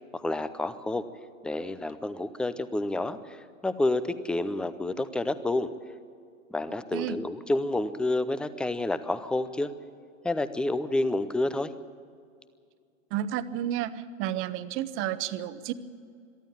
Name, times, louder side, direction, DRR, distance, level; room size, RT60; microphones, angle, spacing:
voice 1, 0.1-1.1 1.4-5.7 6.5-9.7 10.2-11.7, left 2 dB, ahead, 13 dB, 0.4 m, -29 dB
voice 2, 13.1-15.7, right 11 dB, 30° right, 13 dB, 1.0 m, -31 dB
22.5 x 14.0 x 8.8 m, 2.3 s
hypercardioid pair, 115°, 40 cm